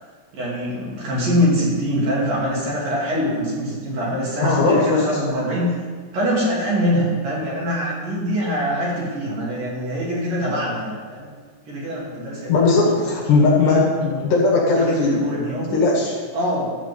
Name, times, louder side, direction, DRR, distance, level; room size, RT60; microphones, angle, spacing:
voice 1, 0.3-5.8 6.1-11.3 11.7-13.1 13.6-14.2 14.7-15.8 16.3-16.7, equal, 50° right, -7 dB, 3.9 m, -24 dB
voice 2, 4.4-5.0 12.5-15.2 15.7-16.2, left 3 dB, 65° left, -4 dB, 3.8 m, -18 dB
12.5 x 4.9 x 8.0 m, 1.5 s
omnidirectional pair, 5.6 m